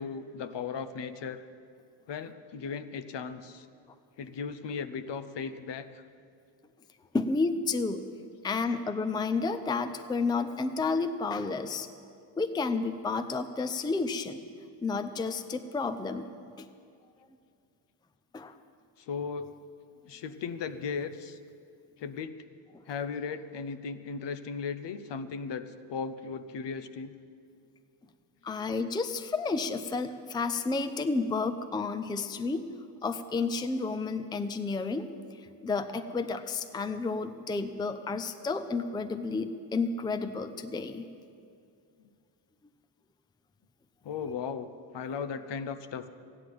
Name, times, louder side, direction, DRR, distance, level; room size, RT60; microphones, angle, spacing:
voice 1, 0.0-1.4 2.1-3.7 4.2-6.0 19.0-19.5 20.1-21.4 22.0-22.4 22.9-27.1 42.0-42.1 44.0-46.1, left 5 dB, 60° left, 11 dB, 0.9 m, -37 dB
voice 2, 7.1-8.1 8.4-11.9 12.4-14.4 14.8-16.3 16.6-16.7 18.3-18.6 28.4-32.7 33.0-35.1 35.4-41.0, left 4 dB, 10° left, 10 dB, 0.5 m, -31 dB
14.0 x 9.9 x 7.7 m, 2.4 s
cardioid pair, 105°, 49 cm